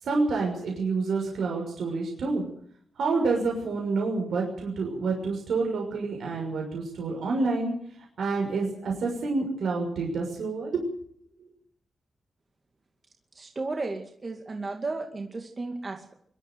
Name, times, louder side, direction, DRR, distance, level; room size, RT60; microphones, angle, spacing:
voice 1, 0.0-2.4 3.0-7.7 8.2-10.8, right 3 dB, 80° right, 0 dB, 6.2 m, -28 dB
voice 2, 13.3-16.1, right 3 dB, 30° right, 3 dB, 2.4 m, -34 dB
24.0 x 13.5 x 9.3 m, 0.65 s
wide cardioid pair, 140°, 0 cm